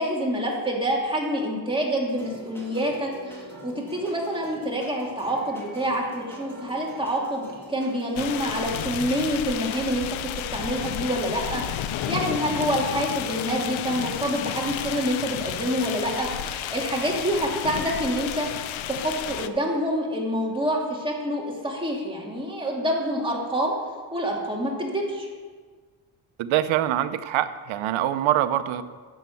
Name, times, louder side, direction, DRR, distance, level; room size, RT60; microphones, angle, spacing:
voice 1, 0.0-10.1 10.5-23.7 24.1-25.3, equal, 10° right, -2 dB, 2.5 m, -27 dB
sound 1, 2.1-8.8, equal, 5° left, 2.4 m, -43 dB
sound 2, 8.2-19.5, left 11 dB, 85° left, 0.7 m, -32 dB
voice 2, 26.4-28.8, right 12 dB, 90° right, 12 dB, 0.7 m, -24 dB
9.2 x 7.3 x 7.0 m, 1.5 s
cardioid pair, 105°, 46 cm